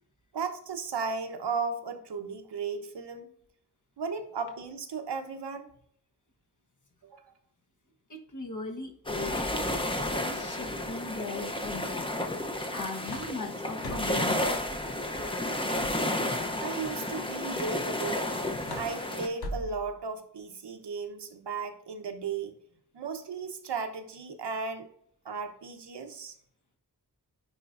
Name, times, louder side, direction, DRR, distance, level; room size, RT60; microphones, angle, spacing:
voice 1, 0.3-3.3 4.0-5.7 7.0-7.3 16.6-18.3 18.7-22.5 22.9-24.9 25.2-26.3, right 5 dB, 85° right, 6 dB, 1.0 m, -35 dB
voice 2, 8.1-9.5 9.9-12.1 12.7-14.5, left 3 dB, 50° left, 2 dB, 1.3 m, -38 dB
sound 1, 9.1-19.3, left 1 dB, 15° left, 0.7 m, -32 dB
sound 2, 12.5-14.3 15.7-16.9 18.1-20.0, left 1 dB, 70° left, 1.0 m, -44 dB
9.7 x 4.4 x 2.5 m, 0.65 s
wide cardioid pair, 125°, 40 cm